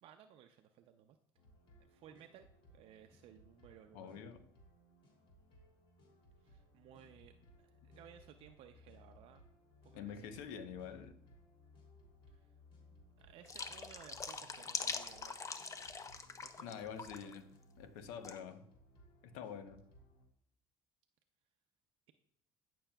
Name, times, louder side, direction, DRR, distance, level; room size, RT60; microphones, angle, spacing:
voice 1, 0.0-1.2 1.8-2.5 2.7-4.2 6.4-9.4 9.8-10.7 12.3-12.5 13.2-15.4 16.4-17.3, right 9 dB, 60° right, 6 dB, 0.6 m, -59 dB
sound 1, 1.4-20.3, left 1 dB, 55° left, 2.9 m, -63 dB
voice 2, 3.9-4.4 9.9-11.2 16.6-17.4 17.8-18.6 19.2-19.8, left 7 dB, 80° left, 9 dB, 0.9 m, -46 dB
sound 2, 13.4-16.7 17.0-17.4 18.2-18.4, left 4 dB, 30° left, 0.8 m, -43 dB
15.0 x 6.1 x 2.3 m, 0.68 s
hypercardioid pair, 70°, 11 cm